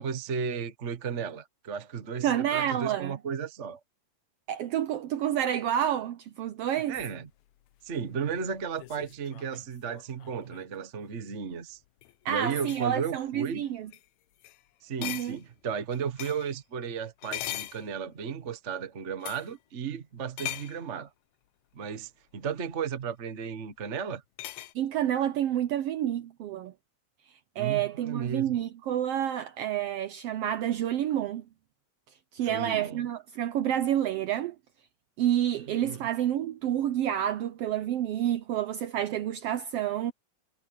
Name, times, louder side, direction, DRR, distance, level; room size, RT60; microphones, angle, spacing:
voice 1, 0.0-3.8 6.9-7.3 7.8-11.8 12.3-13.7 14.8-21.1 21.7-24.2 27.6-28.6 32.4-33.1 35.7-36.1, right 6 dB, 45° right, 0.9 m, -34 dB
voice 2, 2.2-3.2 4.5-7.0 12.2-13.9 15.0-15.4 24.7-26.7 27.6-31.4 32.3-34.6 35.2-40.1, right 11 dB, 75° right, 1.4 m, -29 dB
sound 1, 7.0-10.8 11.8-12.1 12.5-12.9 13.5-13.6 13.9-14.0 14.4-14.6 15.0-16.6 17.2-18.4 19.2-19.5 20.4-20.8 22.5-22.6 24.4-24.7, left 14 dB, 75° left, 2.0 m, -40 dB
omnidirectional pair, 3.4 m